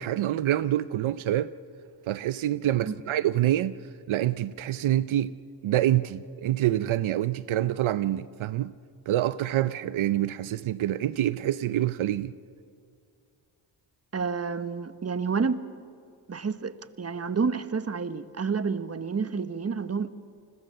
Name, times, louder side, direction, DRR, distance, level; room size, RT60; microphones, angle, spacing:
voice 1, 0.0-1.5 2.1-3.8 4.1-5.3 5.6-8.7 9.1-12.3, right 13 dB, 80° right, 0.7 m, -26 dB
voice 2, 14.1-15.6 16.3-20.1, right 5 dB, 30° right, 1.2 m, -29 dB
29.0 x 21.0 x 6.8 m
cardioid pair, 70°, 47 cm